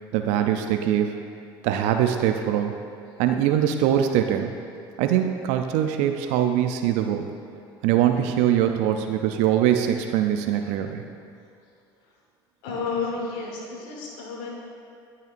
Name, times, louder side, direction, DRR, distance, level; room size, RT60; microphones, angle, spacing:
voice 1, 0.1-1.2 1.6-2.7 3.2-4.5 5.0-7.3 7.8-11.0, right 10 dB, 70° right, 6 dB, 0.4 m, -22 dB
voice 2, 12.6-14.5, left 4 dB, 75° left, -1 dB, 1.3 m, -31 dB
12.5 x 5.6 x 2.5 m, 2.4 s
hypercardioid pair, 75°, 12 cm